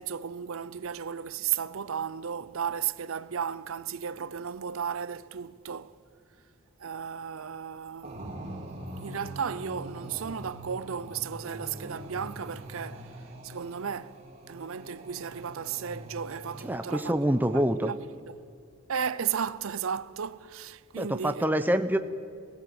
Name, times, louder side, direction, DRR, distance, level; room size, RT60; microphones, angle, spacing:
voice 1, 0.0-5.9 6.8-8.5 9.0-13.2 13.4-14.2 14.5-18.0 18.3-18.4 18.9-21.5, right 7 dB, 85° right, 0.6 m, -34 dB
sound 1, 8.0-17.9, right 1 dB, 30° right, 3.6 m, -43 dB
voice 2, 16.6-17.9 21.0-22.0, equal, 10° right, 0.8 m, -26 dB
23.5 x 17.5 x 7.9 m
head